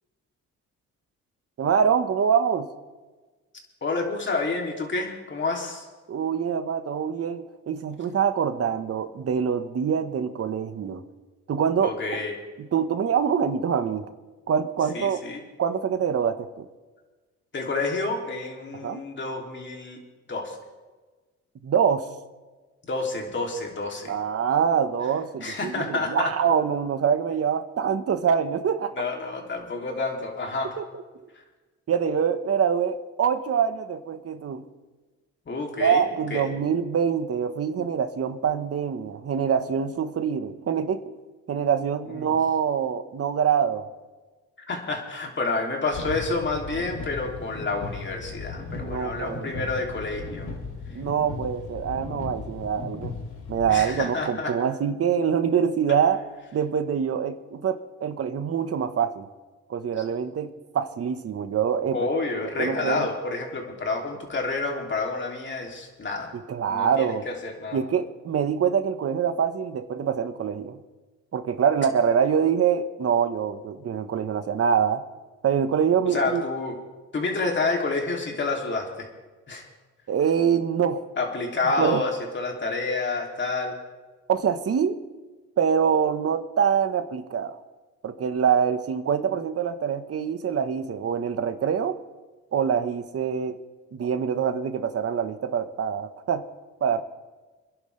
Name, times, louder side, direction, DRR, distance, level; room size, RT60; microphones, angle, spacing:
voice 1, 1.6-2.7 6.1-11.0 11.5-12.0 12.6-14.1 14.5-15.2 15.6-16.7 18.7-19.0 21.6-22.0 24.1-29.0 30.8-30.9 31.9-34.6 35.8-41.0 41.5-43.8 48.8-49.7 50.9-53.1 53.5-56.2 56.5-59.3 59.7-60.5 60.7-62.0 62.6-63.1 66.3-67.3 67.7-70.8 71.3-75.0 75.4-76.4 80.1-81.0 81.8-82.0 84.3-85.0 85.6-87.6 88.0-92.0 92.5-93.6 93.9-96.4 96.8-97.0, right 7 dB, 50° right, 9 dB, 1.3 m, -25 dB
voice 2, 3.8-5.8 11.8-12.3 14.9-15.4 17.5-20.0 20.3-20.6 22.9-24.1 25.4-26.3 29.0-30.8 35.5-36.0 36.3-36.5 42.1-42.3 44.7-50.5 53.7-54.6 60.0-60.1 61.9-66.3 66.7-67.8 76.1-76.7 77.1-79.1 79.5-79.7 81.2-83.7, left 3 dB, 40° left, 1 dB, 3.0 m, -29 dB
sound 1, 45.9-53.8, left 4 dB, 75° left, 3.8 m, -37 dB
26.5 x 11.0 x 3.4 m, 1.3 s
cardioid pair, 90°, 30 cm